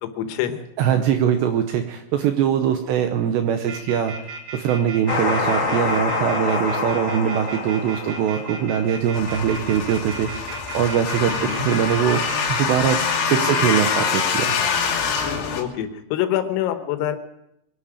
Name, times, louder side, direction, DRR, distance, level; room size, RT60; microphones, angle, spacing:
voice 1, 0.0-0.6 11.3-11.7 15.6-17.2, left 11 dB, 85° left, 8 dB, 3.8 m, -25 dB
voice 2, 0.8-4.1 4.5-13.0 13.2-14.6, right 9 dB, 80° right, 6 dB, 2.6 m, -22 dB
sound 1, 3.7-13.8, right 4 dB, 60° right, 3.4 m, -35 dB
sound 2, 5.1-9.3, left 4 dB, 45° left, 1.6 m, -26 dB
sound 3, 9.1-15.6, left 6 dB, 60° left, 3.3 m, -24 dB
23.0 x 11.5 x 5.0 m, 0.81 s
omnidirectional pair, 5.9 m